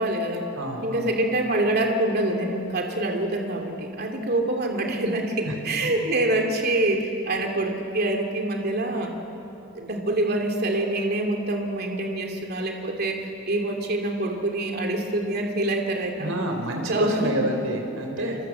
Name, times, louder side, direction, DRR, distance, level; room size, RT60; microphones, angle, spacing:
voice 1, 0.0-0.5 0.8-9.1 9.7-16.3 16.6-17.3, right 1 dB, 50° right, 3 dB, 2.6 m, -26 dB
voice 2, 0.5-1.2 5.4-5.5 16.2-18.4, right 1 dB, 85° right, 3 dB, 4.9 m, -28 dB
26.5 x 26.5 x 7.8 m, 2.9 s
head